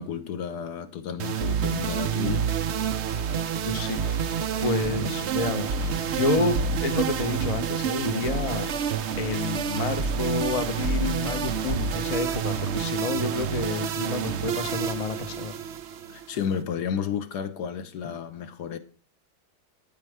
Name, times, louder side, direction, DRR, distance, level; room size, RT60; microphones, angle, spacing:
voice 1, 0.0-2.5 16.1-18.8, left 7 dB, 65° left, 1.2 m, -32 dB
sound 1, 1.2-16.6, right 7 dB, 75° right, 0.6 m, -28 dB
voice 2, 3.7-4.2 4.6-8.7 9.2-15.5, left 3 dB, 35° left, 0.6 m, -29 dB
9.0 x 8.6 x 3.4 m
omnidirectional pair, 2.1 m